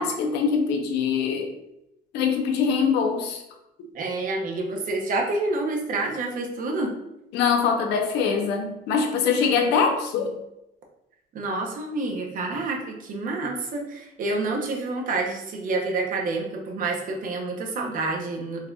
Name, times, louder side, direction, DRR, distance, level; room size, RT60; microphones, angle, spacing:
voice 1, 0.0-1.5 2.1-3.4 7.3-10.3, left 6 dB, 90° left, 4 dB, 0.6 m, -23 dB
voice 2, 3.9-6.9 11.3-18.7, right 3 dB, 55° right, 1 dB, 0.7 m, -28 dB
4.0 x 2.6 x 2.3 m, 0.87 s
cardioid pair, 110°, 17 cm